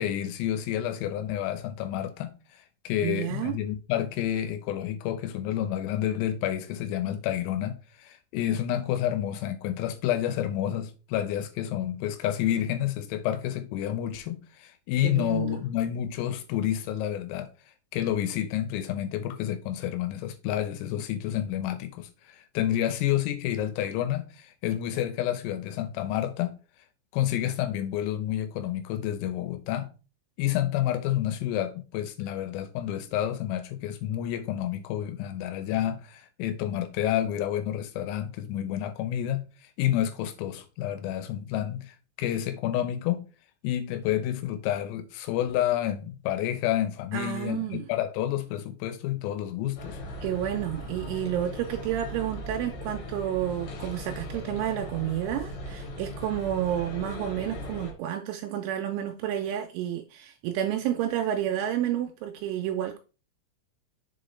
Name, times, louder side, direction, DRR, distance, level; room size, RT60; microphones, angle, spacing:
voice 1, 0.0-2.3 2.8-17.5 17.9-26.5 27.1-29.9 30.4-39.5 39.8-43.2 43.6-50.0, left 11 dB, 90° left, 3.5 m, -29 dB
voice 2, 3.0-3.5 15.0-15.6 47.1-47.9 50.2-63.0, right 11 dB, 80° right, 2.9 m, -30 dB
sound 1, 49.8-57.9, equal, 60° left, 3.3 m, -38 dB
7.0 x 5.1 x 3.2 m
omnidirectional pair, 5.9 m